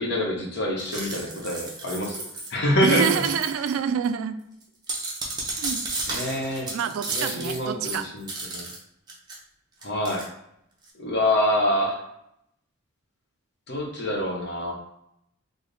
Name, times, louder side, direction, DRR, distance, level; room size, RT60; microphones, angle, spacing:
voice 1, 0.0-2.2 2.5-3.2 6.1-6.7 7.1-8.3 8.5-8.7 9.8-10.2 11.0-12.0 13.7-14.7, left 1 dB, 55° left, -1 dB, 0.8 m, -25 dB
sound 1, 0.8-2.5 2.9-3.8 4.0-4.1 4.6-8.8 9.1-9.4 9.8-10.2, right 3 dB, 20° right, 0.6 m, -33 dB
voice 2, 2.8-4.4 5.6-5.8 6.7-8.1, right 7 dB, 80° right, 11 dB, 0.3 m, -27 dB
3.3 x 2.0 x 3.9 m, 0.76 s
head